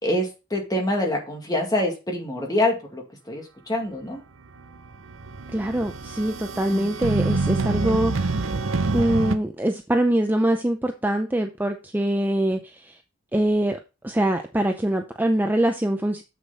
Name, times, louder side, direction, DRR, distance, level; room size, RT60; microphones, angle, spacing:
voice 1, 0.0-4.2 6.7-7.3, left 1 dB, 20° left, 1 dB, 2.1 m, -26 dB
sound 1, 4.5-9.4, right 3 dB, 70° right, 0.7 m, -26 dB
voice 2, 5.5-8.6 8.9-13.0 13.3-13.8 14.0-16.2, right 1 dB, 10° right, 5 dB, 0.5 m, -24 dB
7.3 x 6.6 x 4.0 m, 0.29 s
head